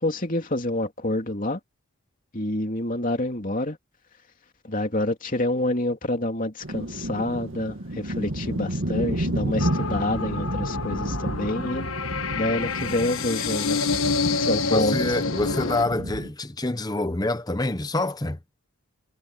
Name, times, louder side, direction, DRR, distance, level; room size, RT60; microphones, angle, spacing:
voice 1, 0.0-1.6 2.3-3.8 4.7-11.9 12.3-13.8 14.4-15.2, left 1 dB, 35° left, 3.0 m, -27 dB
sound 1, 6.6-16.3, right 1 dB, 60° right, 2.0 m, -31 dB
sound 2, 9.6-15.8, left 4 dB, 65° left, 1.4 m, -28 dB
voice 2, 14.6-18.4, left 2 dB, 15° left, 0.9 m, -26 dB
head